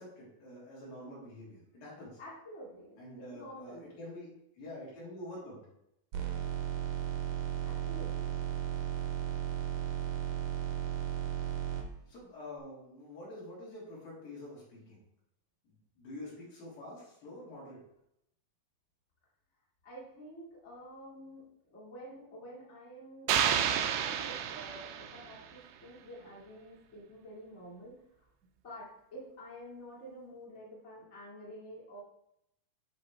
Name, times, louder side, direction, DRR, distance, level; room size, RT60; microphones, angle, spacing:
voice 1, 0.0-2.2 3.0-4.3 4.5-5.7 12.1-15.0 15.6-17.8, left 1 dB, 65° left, -7 dB, 4.6 m, -47 dB
voice 2, 2.2-3.9 7.6-8.4 19.8-21.4 21.7-28.2 28.6-32.0, equal, 25° left, -6 dB, 1.6 m, -49 dB
sound 1, 6.1-11.8, right 10 dB, 70° right, 1.8 m, -35 dB
sound 2, 23.3-25.4, right 9 dB, 90° right, 2.6 m, -30 dB
10.0 x 4.5 x 3.2 m, 0.79 s
omnidirectional pair, 4.5 m